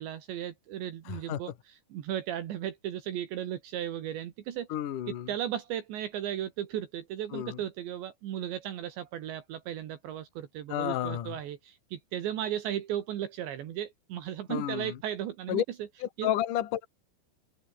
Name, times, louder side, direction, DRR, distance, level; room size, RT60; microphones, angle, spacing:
voice 1, 0.0-4.7 5.3-15.9 16.2-16.3, right 11 dB, 70° right, 4.1 m, -36 dB
voice 2, 1.1-1.4 4.7-5.3 7.3-7.6 10.7-11.4 14.5-15.0 15.5-15.6 16.0-16.9, left 12 dB, 55° left, 2.8 m, -31 dB
omnidirectional pair, 5.4 m